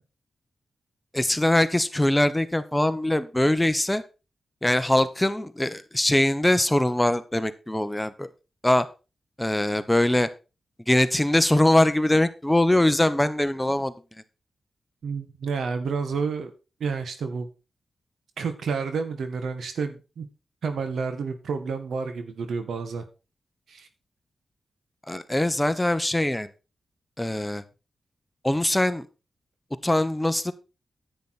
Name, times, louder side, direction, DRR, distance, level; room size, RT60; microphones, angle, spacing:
voice 1, 1.1-4.0 4.6-8.3 8.6-8.9 9.4-10.3 10.9-13.9 25.1-26.5 27.2-27.6 28.4-29.1 29.8-30.5, left 1 dB, 10° left, 12 dB, 1.2 m, -22 dB
voice 2, 15.0-16.5 16.8-17.5 18.4-20.3 20.6-23.0 23.7-23.9, right 5 dB, 80° right, 8 dB, 1.8 m, -30 dB
10.5 x 8.9 x 4.3 m, 0.31 s
cardioid pair, 55°, 0 cm